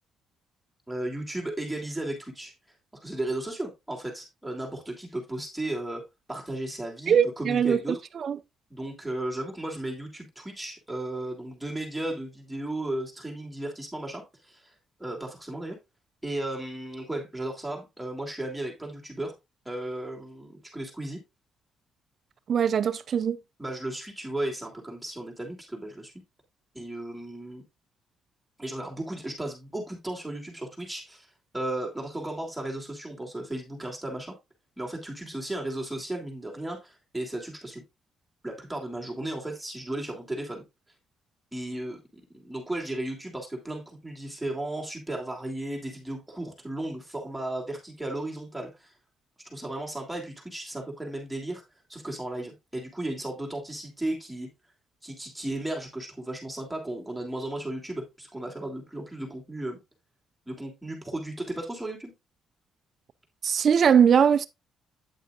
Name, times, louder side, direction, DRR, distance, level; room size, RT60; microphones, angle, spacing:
voice 1, 0.9-2.5 3.0-6.0 6.3-8.0 8.7-14.7 15.0-15.8 16.2-19.3 19.6-21.2 23.6-26.1 26.7-27.6 28.6-31.3 31.5-34.3 34.8-37.8 38.4-40.6 41.5-48.9 49.5-51.6 51.9-54.5 55.0-59.8 60.5-62.1, right 1 dB, 5° right, 3.0 m, -35 dB
voice 2, 7.1-7.8 8.2-8.4 22.5-23.4 63.4-64.5, right 7 dB, 55° right, 0.5 m, -21 dB
9.2 x 8.1 x 2.5 m
cardioid pair, 90°, 0 cm